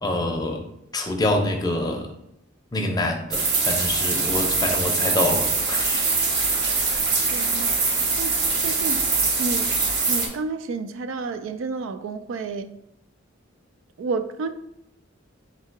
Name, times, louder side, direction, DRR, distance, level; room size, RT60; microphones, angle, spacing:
voice 1, 0.0-0.7 0.9-2.1 2.7-6.1, left 1 dB, 20° left, 0.5 m, -26 dB
sound 1, 3.3-10.3, right 4 dB, 55° right, 0.8 m, -23 dB
voice 2, 7.3-7.8 8.2-8.3 8.6-9.1 9.4-9.8 10.1-12.8 14.0-14.5, right 4 dB, 75° right, 0.3 m, -30 dB
3.8 x 2.8 x 4.5 m
head